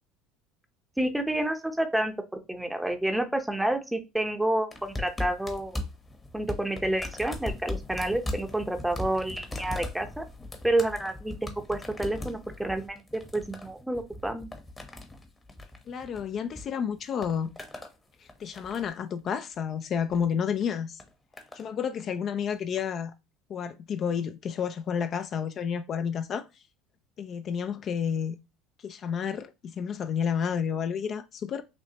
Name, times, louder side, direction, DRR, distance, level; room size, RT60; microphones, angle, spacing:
voice 1, 1.0-2.1 2.5-5.8 6.3-10.2 10.6-14.5, right 1 dB, 5° right, 0.6 m, -29 dB
sound 1, 4.7-16.6 16.9-17.9 18.3-19.0 19.9-20.2 21.0-21.7 22.5-22.6, left 2 dB, 20° left, 0.9 m, -39 dB
voice 2, 15.9-17.5 18.2-21.0 21.5-23.1 23.5-26.6 27.2-28.4 28.8-31.6, left 7 dB, 40° left, 0.3 m, -30 dB
5.9 x 2.1 x 2.8 m
supercardioid pair, 110°, 0 cm